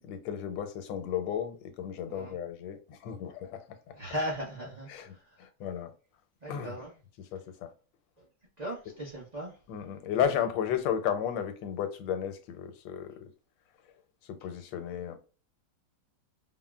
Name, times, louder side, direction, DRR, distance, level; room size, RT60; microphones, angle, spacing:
voice 1, 0.1-3.6 4.9-5.9 6.5-6.8 7.2-7.7 9.7-13.2 14.3-15.2, left 9 dB, 85° left, 1.3 m, -33 dB
voice 2, 4.0-5.4 6.4-6.9 8.2-8.3 8.6-9.6, equal, 65° right, 0.4 m, -37 dB
3.6 x 2.0 x 2.2 m
omnidirectional pair, 2.0 m